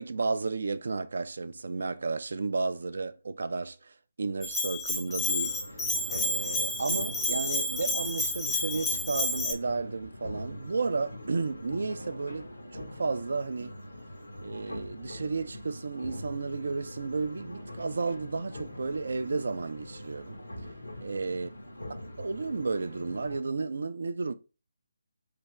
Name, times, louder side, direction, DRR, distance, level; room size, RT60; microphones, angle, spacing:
voice 1, 0.0-13.7 14.4-20.4 21.0-21.5 22.2-24.3, right 4 dB, 60° right, 0.3 m, -33 dB
Bell, 4.4-9.5, left 2 dB, 10° left, 0.4 m, -30 dB
sound 1, 5.1-23.4, left 1 dB, 85° left, 0.8 m, -43 dB
3.3 x 2.9 x 3.1 m
figure-of-eight pair, 145°, 0 cm